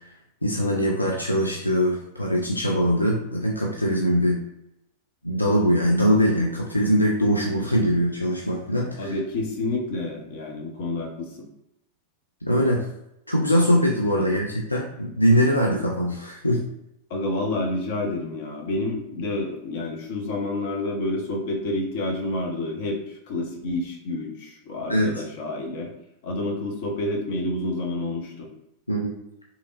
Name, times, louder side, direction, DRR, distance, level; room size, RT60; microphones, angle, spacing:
voice 1, 0.4-4.4 5.2-9.1 12.5-12.8 13.3-16.6 24.9-25.2 28.9-29.1, equal, 85° left, -1 dB, 0.4 m, -22 dB
voice 2, 9.0-11.3 14.2-14.3 17.1-25.9 26.2-28.5, left 2 dB, 50° left, 0 dB, 0.8 m, -29 dB
3.5 x 2.9 x 2.4 m, 0.82 s
figure-of-eight pair, 90°, 0 cm